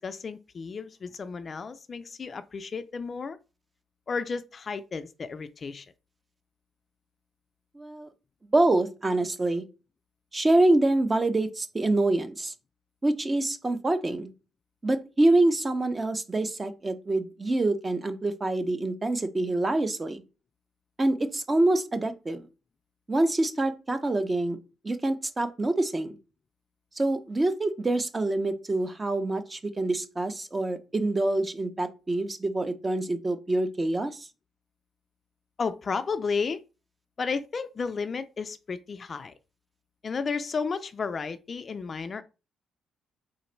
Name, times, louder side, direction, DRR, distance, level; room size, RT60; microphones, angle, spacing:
voice 1, 0.0-3.4 4.1-5.9 35.6-36.6 37.2-39.3 40.0-42.2, left 5 dB, 40° left, 0.3 m, -32 dB
voice 2, 7.7-8.1 8.5-9.6 10.3-12.5 13.0-14.3 14.8-20.2 21.0-22.4 23.1-24.6 24.8-26.2 27.0-34.3, right 2 dB, 25° right, 0.6 m, -26 dB
3.8 x 2.5 x 4.3 m
cardioid pair, 90°, 0 cm